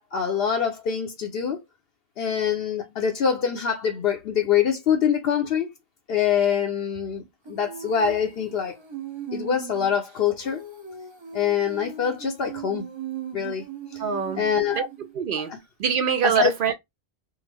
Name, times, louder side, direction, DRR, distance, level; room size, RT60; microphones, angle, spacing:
voice 1, 0.0-1.6 2.2-5.7 6.1-8.7 9.3-10.6 11.3-12.9 13.3-13.6 13.9-14.0 14.4-14.9 15.5-15.6 16.2-16.5, left 8 dB, 70° left, 0.8 m, -24 dB
Female singing, 7.5-15.1, right 7 dB, 30° right, 0.7 m, -38 dB
voice 2, 14.0-14.4 14.8-14.9 15.1-15.5 15.8-16.7, right 7 dB, 65° right, 0.7 m, -24 dB
3.5 x 2.0 x 3.2 m
omnidirectional pair, 1.1 m